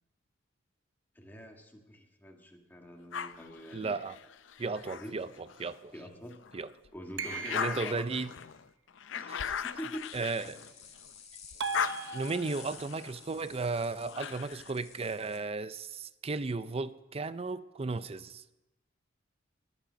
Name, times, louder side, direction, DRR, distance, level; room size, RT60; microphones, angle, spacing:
voice 1, 1.2-3.9 5.0-5.2 5.9-6.4 6.9-8.1 9.1-10.6, equal, 10° left, 1 dB, 1.7 m, -45 dB
sound 1, 3.1-5.8 6.3-11.1 11.4-14.7, left 7 dB, 75° left, 0.5 m, -39 dB
voice 2, 3.7-4.2 4.6-5.3 5.6-5.9 6.5-6.7 7.5-8.3 9.3-9.4 10.1-10.6 12.1-18.4, right 3 dB, 30° right, 14 dB, 0.5 m, -35 dB
sound 2, 7.2-8.1 11.6-12.8, right 5 dB, 90° right, 1.0 m, -38 dB
sound 3, 9.9-15.4, left 6 dB, 35° left, 1.8 m, -52 dB
17.0 x 10.5 x 5.2 m, 1.0 s
head